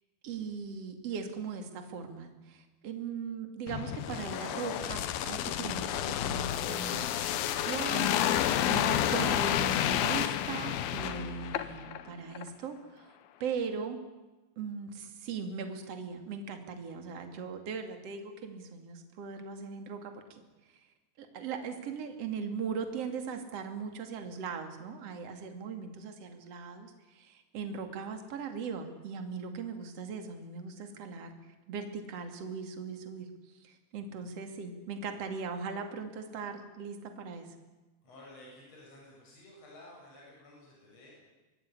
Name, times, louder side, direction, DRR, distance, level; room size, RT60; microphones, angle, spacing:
voice 1, 0.2-14.0 14.6-20.4 21.2-31.3 31.7-33.3 33.6-37.5, right 5 dB, 40° right, 6 dB, 3.1 m, -39 dB
sound 1, 3.7-12.0 12.3-12.5, left 11 dB, 70° left, 2.7 m, -30 dB
voice 2, 38.0-41.1, left 1 dB, 35° left, -3 dB, 8.9 m, -53 dB
24.5 x 20.5 x 9.8 m, 1.2 s
omnidirectional pair, 4.9 m